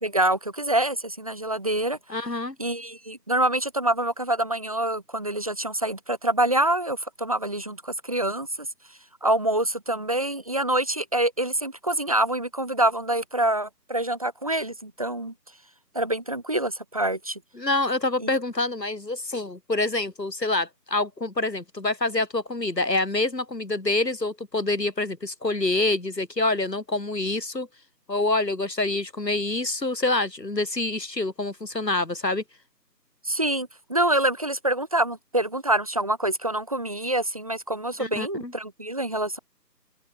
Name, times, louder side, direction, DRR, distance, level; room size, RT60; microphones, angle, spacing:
voice 1, 0.0-2.0 2.6-8.7 9.2-15.3 15.9-17.4 18.2-18.3 33.2-39.4, right 1 dB, 20° right, 3.1 m, -26 dB
voice 2, 2.1-2.6 17.6-27.7 28.1-32.4 38.0-38.5, left 2 dB, 75° left, 4.4 m, -26 dB
open air
figure-of-eight pair, 175°, 50 cm